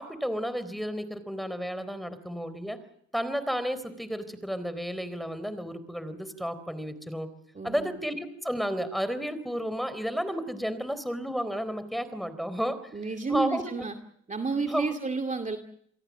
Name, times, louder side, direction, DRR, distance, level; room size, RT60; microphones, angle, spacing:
voice 1, 0.0-2.8 3.1-7.3 7.6-12.9 13.3-13.6 14.7-14.9, equal, ahead, 13 dB, 3.9 m, -32 dB
voice 2, 7.5-8.0 12.9-13.9 14.3-15.6, right 4 dB, 25° right, 5 dB, 2.4 m, -31 dB
28.5 x 23.0 x 7.4 m, 0.69 s
cardioid pair, 90°, 30 cm